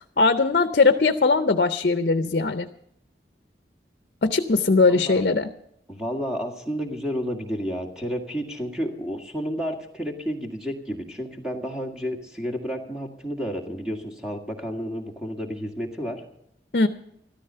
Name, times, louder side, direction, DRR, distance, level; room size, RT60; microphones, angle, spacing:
voice 1, 0.2-2.7 4.2-5.5 16.7-16.9, left 3 dB, 60° left, 9 dB, 0.6 m, -20 dB
voice 2, 4.9-5.2 5.9-16.2, equal, 5° right, 2 dB, 1.8 m, -31 dB
13.5 x 13.5 x 5.6 m, 0.73 s
head